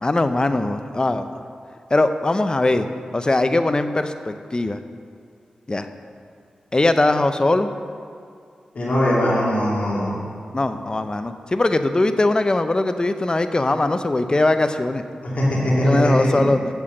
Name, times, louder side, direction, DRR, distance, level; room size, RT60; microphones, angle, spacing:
voice 1, 0.0-1.3 1.9-2.9 3.1-4.8 5.7-5.9 6.7-7.7 10.5-15.0 15.8-16.6, left 2 dB, 30° left, 9 dB, 0.6 m, -20 dB
voice 2, 8.7-10.2 15.2-16.5, equal, 60° left, -7 dB, 2.6 m, -20 dB
8.0 x 7.6 x 6.4 m, 2.3 s
cardioid pair, 55°, 3 cm